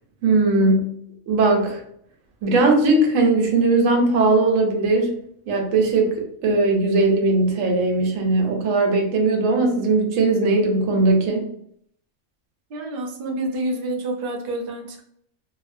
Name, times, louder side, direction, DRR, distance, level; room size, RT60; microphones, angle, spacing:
voice 1, 0.2-0.8 1.3-1.8 2.4-5.1 5.5-11.5, right 2 dB, 90° right, 2 dB, 1.0 m, -19 dB
voice 2, 12.7-15.0, right 1 dB, 60° right, 2 dB, 0.6 m, -28 dB
2.6 x 2.1 x 2.5 m, 0.68 s
omnidirectional pair, 1.3 m